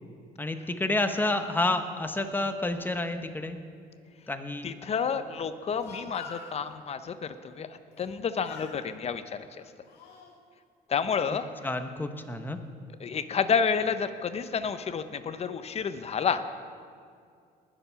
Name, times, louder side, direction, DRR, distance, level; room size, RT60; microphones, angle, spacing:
voice 1, 0.4-3.6 4.3-4.7 11.6-12.6, left 2 dB, 10° left, 7 dB, 0.9 m, -29 dB
voice 2, 4.6-9.5 10.9-11.5 13.0-16.4, left 6 dB, 40° left, 11 dB, 0.7 m, -30 dB
Speech, 5.5-6.6 7.9-8.2 8.4-8.8 9.5-10.3, left 5 dB, 70° left, 2.1 m, -45 dB
19.5 x 7.0 x 5.7 m, 2.3 s
cardioid pair, 110°, 17 cm